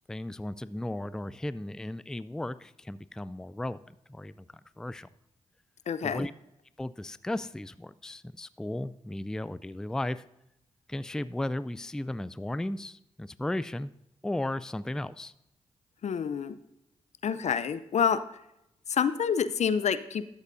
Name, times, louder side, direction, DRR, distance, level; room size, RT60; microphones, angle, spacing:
voice 1, 0.1-4.5 4.8-5.1 6.0-6.3 6.8-10.2 10.9-13.9 14.2-15.3, left 1 dB, 5° left, 16 dB, 0.4 m, -35 dB
voice 2, 5.9-6.3 16.0-16.6 17.2-18.2 18.9-20.2, left 7 dB, 60° left, 14 dB, 0.6 m, -27 dB
12.0 x 8.1 x 2.6 m, 0.82 s
supercardioid pair, 40°, 13 cm